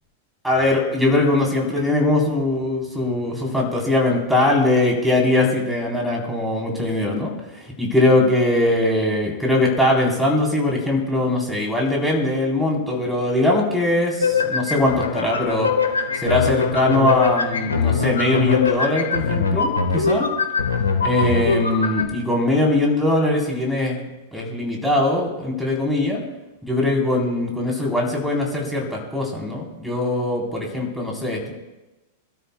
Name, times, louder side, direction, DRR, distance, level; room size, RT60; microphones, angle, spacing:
voice 1, 0.4-15.7 16.1-20.3 21.0-24.0 24.3-26.2 26.6-31.5, left 1 dB, ahead, -2 dB, 4.0 m, -21 dB
sound 1, 14.2-22.1, left 5 dB, 80° left, 1.6 m, -22 dB
25.5 x 13.0 x 2.3 m, 1.1 s
figure-of-eight pair, 95°, 0 cm